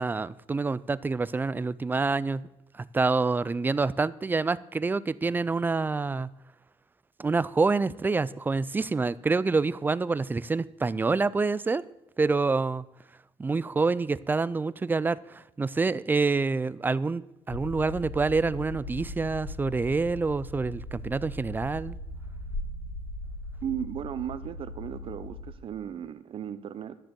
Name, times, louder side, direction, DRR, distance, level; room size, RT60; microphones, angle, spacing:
voice 1, 0.0-2.4 2.7-6.3 7.2-11.9 12.2-12.9 13.4-22.0, right 4 dB, 15° right, 18 dB, 0.3 m, -27 dB
sound 1, 17.5-25.5, left 1 dB, 45° left, 1.8 m, -39 dB
voice 2, 23.6-27.0, right 9 dB, 45° right, 13 dB, 0.7 m, -36 dB
12.0 x 6.8 x 7.6 m, 0.92 s
cardioid pair, 130°, 12 cm